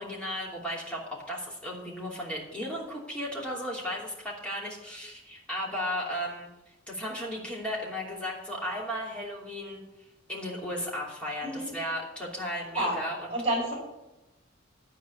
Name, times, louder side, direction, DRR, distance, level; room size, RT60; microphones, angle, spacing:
voice 1, 0.0-6.5 6.9-9.8 10.3-13.3, equal, 5° left, -4 dB, 2.9 m, -35 dB
voice 2, 11.4-11.7 12.7-13.0 13.3-13.7, right 1 dB, 30° right, -5 dB, 4.9 m, -29 dB
13.0 x 4.7 x 8.4 m, 0.95 s
head